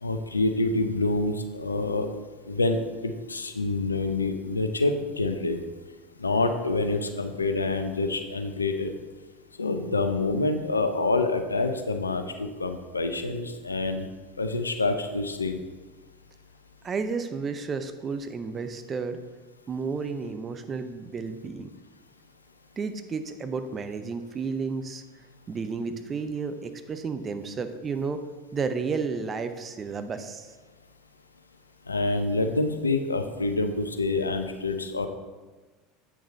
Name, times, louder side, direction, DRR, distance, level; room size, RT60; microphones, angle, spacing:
voice 1, 0.0-2.1 2.5-5.6 6.2-8.9 9.6-14.1 14.4-15.6 31.9-35.1, left 2 dB, 90° left, 7 dB, 0.6 m, -27 dB
voice 2, 16.8-19.2 19.7-21.7 22.8-25.0 25.5-28.3 28.5-30.6, right 5 dB, 30° right, 9 dB, 0.7 m, -32 dB
8.3 x 6.3 x 4.0 m, 1.3 s
figure-of-eight pair, 75°, 0 cm